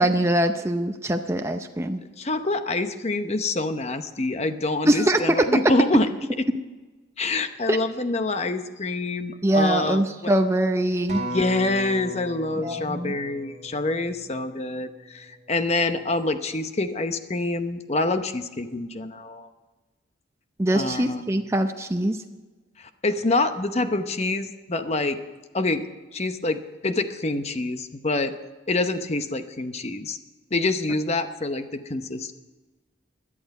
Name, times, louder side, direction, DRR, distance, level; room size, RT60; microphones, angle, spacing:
voice 1, 0.0-2.0 4.9-5.5 7.7-7.8 9.4-11.2 12.6-13.1 20.6-22.2, right 1 dB, 15° right, 5 dB, 0.6 m, -23 dB
voice 2, 2.2-6.1 6.4-6.5 7.2-10.3 11.3-19.5 20.7-21.2 22.8-25.2 25.5-25.9 26.1-28.3 28.7-30.2 30.5-32.3, left 2 dB, 35° left, 9 dB, 0.8 m, -26 dB
Acoustic guitar, 11.1-15.5 16.1-16.3, equal, 35° right, 4.7 m, -37 dB
17.5 x 11.0 x 5.4 m, 1.2 s
head